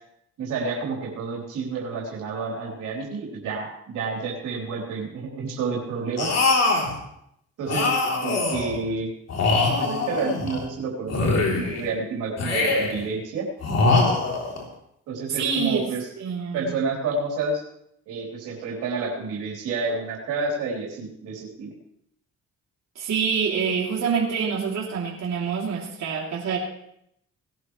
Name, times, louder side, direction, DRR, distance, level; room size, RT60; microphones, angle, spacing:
voice 1, 0.4-6.3 7.6-7.9 8.2-9.1 9.8-13.4 15.1-16.1 16.5-17.6 18.1-21.7, right 4 dB, 90° right, -2 dB, 3.8 m, -29 dB
sound 1, 6.2-7.0 7.7-8.8 9.3-10.6 11.1-11.9 12.4-13.1 13.6-14.6, left 3 dB, 55° left, 3.5 m, -23 dB
voice 2, 15.3-15.9 16.2-16.7 22.9-26.6, right 6 dB, 60° right, -4 dB, 3.2 m, -26 dB
19.5 x 11.5 x 3.3 m, 0.74 s
cardioid pair, 90°, 30 cm